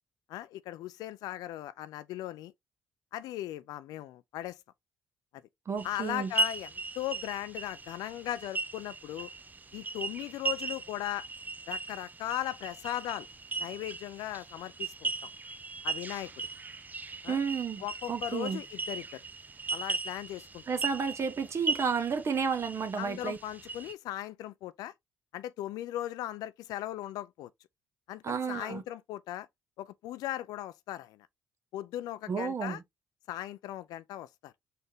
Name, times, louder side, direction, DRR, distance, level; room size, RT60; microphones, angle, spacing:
voice 1, 0.3-2.5 3.1-4.6 5.8-6.7 7.0-9.3 9.7-11.3 11.7-13.3 13.6-15.1 15.8-16.5 17.2-17.4 17.8-19.2 19.7-20.6 23.0-24.9 25.3-27.5 28.1-29.5 29.8-31.3 31.7-32.8 33.3-34.5, left 14 dB, 65° left, 0.4 m, -38 dB
voice 2, 5.7-6.3 17.3-17.8 18.1-18.6 20.7-23.4 28.2-28.8 32.3-32.8, right 6 dB, 45° right, 1.0 m, -31 dB
sound 1, 5.8-23.9, right 3 dB, 25° right, 0.5 m, -38 dB
4.2 x 2.8 x 3.6 m
hypercardioid pair, 45°, 7 cm